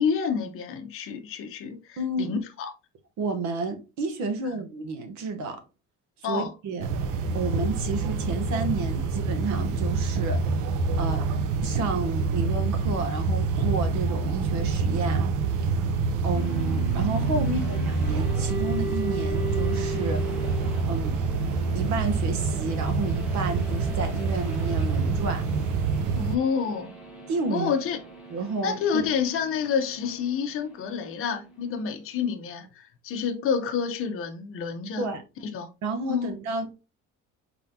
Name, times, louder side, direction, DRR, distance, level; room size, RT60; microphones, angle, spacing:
voice 1, 0.0-2.7 4.4-4.6 6.2-6.5 17.5-17.8 26.1-26.9 27.5-28.0 28.6-35.1 35.5-35.7 36.1-36.3, left 6 dB, 45° left, 0.7 m, -29 dB
voice 2, 2.0-2.3 3.2-5.6 6.2-6.9 7.3-10.7 11.0-11.3 11.6-15.2 15.6-20.2 20.9-21.2 21.7-25.4 27.3-27.7 28.3-29.1 35.0-35.2 35.8-36.8, right 3 dB, 65° right, 1.0 m, -31 dB
sound 1, 6.8-26.4, right 4 dB, 85° right, 0.6 m, -26 dB
sound 2, 16.3-32.1, equal, 5° right, 0.9 m, -39 dB
4.3 x 3.7 x 2.7 m
cardioid pair, 175°, 31 cm